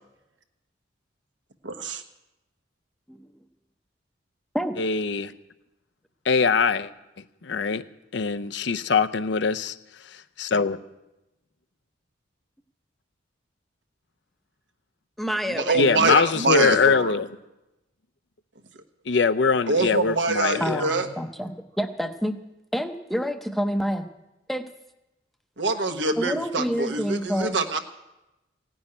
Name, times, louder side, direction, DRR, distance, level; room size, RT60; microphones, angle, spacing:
voice 1, 1.6-2.0 15.5-17.1 19.7-21.1 25.6-27.8, right 3 dB, 70° right, 1.1 m, -25 dB
voice 2, 4.8-5.3 6.3-6.9 7.4-7.8 8.1-9.7 10.4-10.8 15.7-17.3 19.1-20.8, left 5 dB, 65° left, 0.6 m, -22 dB
voice 3, 15.2-16.0 20.6-22.4 22.7-24.1 24.5-24.7 26.2-27.6, equal, ahead, 0.7 m, -28 dB
16.5 x 6.3 x 9.9 m
head